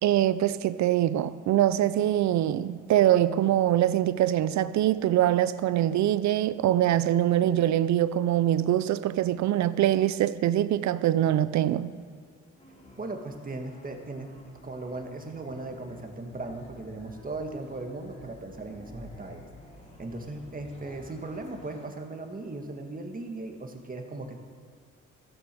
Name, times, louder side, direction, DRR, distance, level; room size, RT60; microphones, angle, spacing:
voice 1, 0.0-12.0, right 12 dB, 65° right, 0.6 m, -24 dB
sound 1, 12.6-21.9, left 1 dB, 20° left, 3.2 m, -51 dB
voice 2, 13.0-14.3 14.6-19.5 20.0-24.4, right 2 dB, 30° right, 1.7 m, -38 dB
15.0 x 7.0 x 6.8 m
cardioid pair, 90°, 30 cm